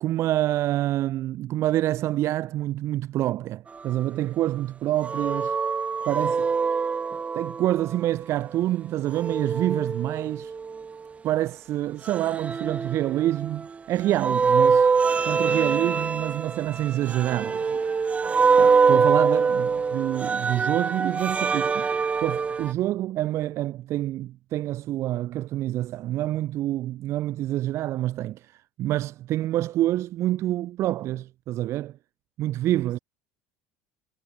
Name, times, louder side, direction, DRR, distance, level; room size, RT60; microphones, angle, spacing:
voice 1, 0.0-5.6 6.1-6.4 7.3-10.5 11.2-14.9 15.3-17.5 18.6-21.9 22.2-31.9 32.4-33.0, right 14 dB, 55° right, 0.9 m, -27 dB
sound 1, 5.0-8.0 9.1-10.9 12.1-13.7 14.1-22.7, right 5 dB, 25° right, 0.6 m, -24 dB
voice 2, 6.0-6.4 16.9-18.0 32.7-33.0, right 40 dB or more, 75° right, 3.8 m, -47 dB
supercardioid pair, 95°, 6 cm